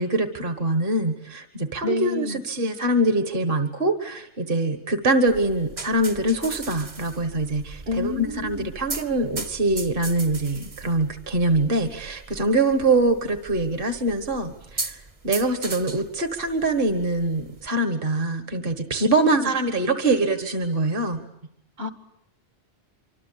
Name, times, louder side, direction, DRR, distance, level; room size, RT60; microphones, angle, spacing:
voice 1, 0.0-21.2, right 2 dB, 50° right, 1.7 m, -24 dB
voice 2, 1.8-2.4 7.9-8.7 19.2-19.5 21.8-21.9, left 2 dB, 70° right, 2.4 m, -29 dB
sound 1, 5.3-17.7, right 3 dB, 30° right, 1.2 m, -38 dB
25.5 x 25.5 x 8.6 m
omnidirectional pair, 1.1 m